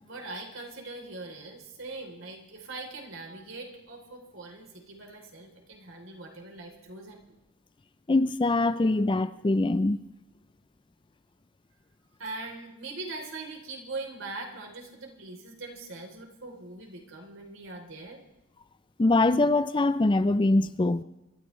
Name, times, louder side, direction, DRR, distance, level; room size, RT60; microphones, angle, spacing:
voice 1, 0.0-7.3 12.2-18.2, right 3 dB, 65° right, 3.3 m, -41 dB
voice 2, 8.1-10.0 19.0-21.0, left 2 dB, 25° left, 0.4 m, -23 dB
25.5 x 13.5 x 3.2 m
head